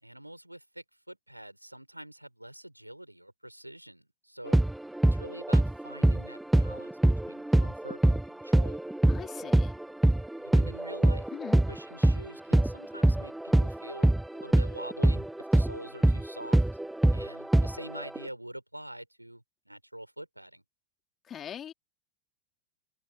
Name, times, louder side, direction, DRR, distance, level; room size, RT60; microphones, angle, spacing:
voice 1, 0.0-4.6 5.0-7.0 7.2-8.8 10.4-11.3 11.7-16.6 17.1-20.6, right 1 dB, 90° right, 4.8 m, -45 dB
sound 1, 4.5-12.3 12.5-18.3, right 1 dB, 5° right, 0.5 m, -24 dB
voice 2, 9.1-9.7 11.3-11.6 21.3-21.7, left 9 dB, 25° left, 3.2 m, -41 dB
figure-of-eight pair, 90°, 0 cm